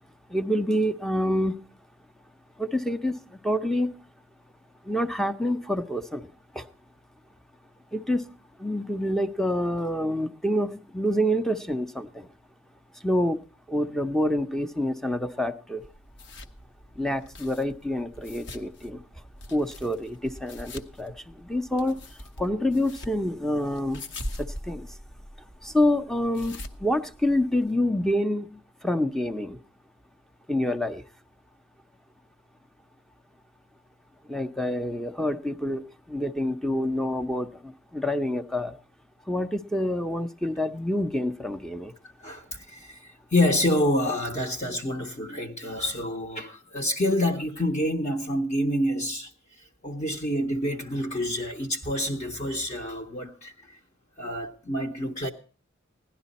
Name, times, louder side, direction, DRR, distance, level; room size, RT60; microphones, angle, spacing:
voice 1, 0.3-1.6 2.6-4.0 4.8-6.7 7.9-8.3 8.6-12.3 12.9-15.9 16.9-19.0 19.5-24.0 24.4-25.0 25.6-29.6 30.5-31.0 34.2-38.8 39.3-42.0, left 1 dB, ahead, 0.5 m, -27 dB
sound 1, 15.8-27.7, left 1 dB, 60° left, 1.0 m, -43 dB
voice 2, 42.2-49.3 49.6-53.8 54.2-55.3, left 1 dB, 35° left, 0.8 m, -28 dB
16.5 x 11.0 x 4.1 m
head